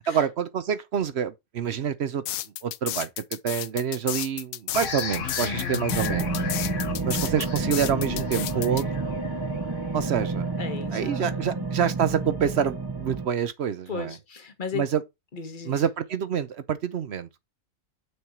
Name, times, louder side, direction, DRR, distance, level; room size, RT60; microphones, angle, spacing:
voice 1, 0.1-2.2 2.6-6.3 7.0-9.1 9.9-10.5 10.9-14.1 14.7-15.0 15.7-17.4, right 8 dB, 60° right, 0.9 m, -27 dB
sound 1, 2.3-8.8, left 14 dB, 85° left, 1.0 m, -32 dB
sound 2, 4.7-10.1, left 7 dB, 65° left, 1.4 m, -35 dB
voice 2, 5.4-5.8 10.6-11.7 13.9-14.9 15.3-15.8, left 5 dB, 40° left, 1.3 m, -36 dB
sound 3, 5.9-13.3, right 3 dB, 20° right, 0.8 m, -30 dB
6.5 x 4.5 x 4.9 m
omnidirectional pair, 1.4 m